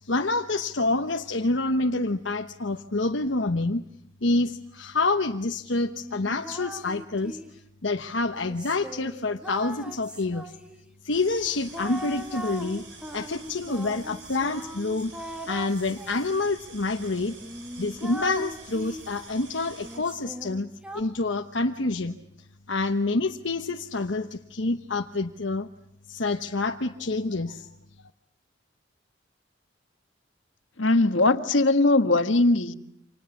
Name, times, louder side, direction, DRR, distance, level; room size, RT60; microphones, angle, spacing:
voice 1, 0.0-3.8 4.2-7.4 7.8-10.5 11.0-12.8 13.1-15.1 15.5-17.3 17.8-20.7 20.9-22.2 22.7-25.7 26.1-27.7, left 3 dB, 70° left, 1.1 m, -27 dB
sound 1, 5.9-7.6 8.3-10.9 11.7-16.4 17.0-17.1 17.4-19.2 19.8-21.0, equal, 5° right, 2.2 m, -40 dB
sound 2, 11.1-20.0, right 4 dB, 75° right, 7.0 m, -48 dB
voice 2, 30.8-32.7, left 2 dB, 90° left, 1.6 m, -20 dB
30.0 x 26.5 x 7.2 m
head